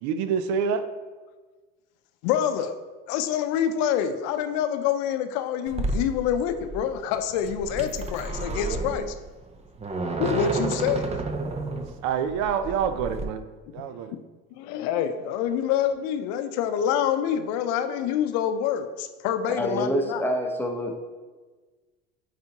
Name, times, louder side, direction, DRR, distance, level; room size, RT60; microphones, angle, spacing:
voice 1, 0.0-0.9 12.0-13.5 13.7-14.1, right 7 dB, 70° right, 10 dB, 0.6 m, -27 dB
voice 2, 2.2-2.8 3.1-9.1 10.2-11.1 14.1-14.2 14.5-20.2, left 9 dB, 75° left, 9 dB, 0.6 m, -26 dB
sound 1, 5.7-13.2, right 2 dB, 20° right, 0.6 m, -31 dB
voice 3, 19.6-21.0, equal, 5° left, 2 dB, 0.9 m, -27 dB
8.7 x 4.2 x 2.9 m, 1.3 s
supercardioid pair, 85°, 29 cm